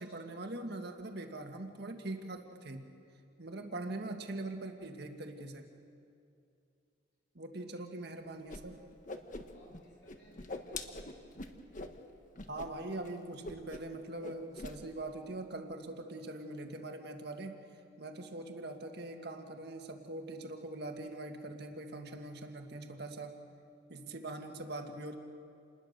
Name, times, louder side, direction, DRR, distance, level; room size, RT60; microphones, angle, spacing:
voice 1, 0.0-2.9 3.4-5.7 7.3-8.8 12.5-17.6 18.0-23.5 23.9-25.2, right 2 dB, 55° right, 4 dB, 1.8 m, -42 dB
Whoosh swoosh swish, 8.5-8.6 8.9-9.8 10.1-12.0 12.4-12.7 12.9-13.1 13.4-14.0 14.2-14.8, left 2 dB, 40° left, 1.3 m, -43 dB
voice 2, 9.5-11.4, left 1 dB, 65° left, -5 dB, 7.5 m, -62 dB
28.5 x 20.5 x 6.7 m, 2.5 s
head